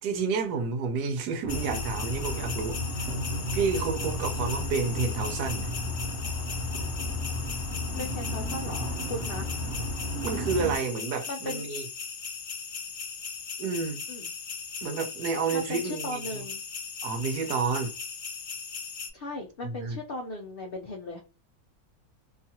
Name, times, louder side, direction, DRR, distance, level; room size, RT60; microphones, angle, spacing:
voice 1, 0.0-3.1 3.5-5.7 9.7-9.8 10.2-11.9 13.6-14.0 14.8-16.4 17.0-18.0 19.6-20.0, right 5 dB, 90° right, 1.2 m, -30 dB
sound 1, 1.4-10.8, left 2 dB, 60° right, 1.1 m, -33 dB
sound 2, 1.5-19.1, left 6 dB, 70° left, 1.0 m, -38 dB
voice 2, 7.9-9.5 11.3-11.7 14.1-14.3 15.5-16.6 19.1-21.2, left 1 dB, 85° left, 0.5 m, -37 dB
2.8 x 2.4 x 2.7 m
omnidirectional pair, 1.7 m